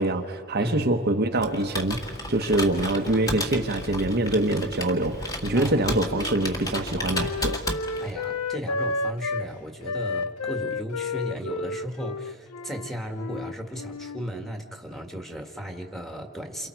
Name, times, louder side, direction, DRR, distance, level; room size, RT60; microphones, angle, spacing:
voice 1, 0.0-2.0 2.3-7.6, right 2 dB, 45° right, 4 dB, 1.0 m, -24 dB
voice 2, 0.6-0.9 5.5-5.9 8.0-16.7, equal, ahead, 3 dB, 1.8 m, -35 dB
Computer keyboard, 1.4-8.2, left 1 dB, 15° left, 1.7 m, -33 dB
Wind instrument woodwind instrument, 5.5-9.5 9.8-14.3, left 3 dB, 85° left, 0.6 m, -32 dB
28.5 x 28.0 x 4.6 m, 2.3 s
head